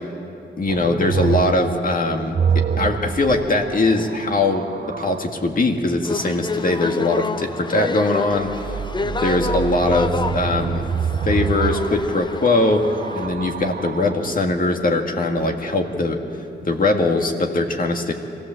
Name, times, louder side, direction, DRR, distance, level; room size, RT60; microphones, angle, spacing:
voice 1, 0.6-4.7 5.0-8.7 9.0-10.8 11.2-16.2 16.6-18.1, left 2 dB, 50° left, 3 dB, 1.9 m, -21 dB
sound 1, 0.7-5.3 8.3-14.4 15.4-16.0, right 6 dB, 50° right, 0.7 m, -27 dB
sound 2, 6.0-13.3, left 3 dB, 25° left, 0.6 m, -29 dB
24.0 x 16.5 x 7.7 m, 2.7 s
wide cardioid pair, 125°, 19 cm